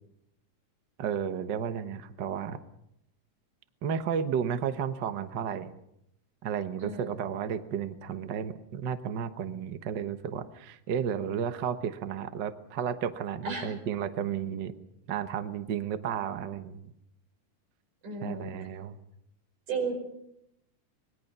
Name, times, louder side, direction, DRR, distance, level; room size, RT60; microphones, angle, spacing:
voice 1, 1.0-2.6 3.8-5.7 6.4-14.7 15.1-16.9 18.2-19.0, right 8 dB, 65° right, 10 dB, 1.1 m, -33 dB
voice 2, 6.8-7.2 13.5-13.7 18.0-18.5 19.7-19.9, right 4 dB, 80° right, 3 dB, 6.8 m, -33 dB
25.0 x 21.0 x 5.5 m, 0.79 s
omnidirectional pair, 3.6 m